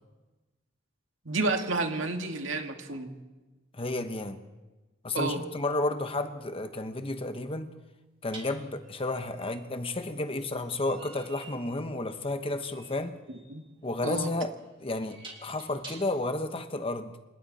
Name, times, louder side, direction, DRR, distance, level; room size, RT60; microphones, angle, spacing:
voice 1, 1.3-3.1 5.1-5.4 13.5-13.6 14.0-14.3, right 3 dB, 80° right, 2.2 m, -30 dB
voice 2, 3.7-4.4 5.0-7.7 8.2-13.2 13.8-14.5 14.8-17.2, left 2 dB, 30° left, 1.2 m, -32 dB
sound 1, 5.9-6.0 8.3-16.4, right 3 dB, 25° right, 3.2 m, -50 dB
27.5 x 26.0 x 4.3 m
head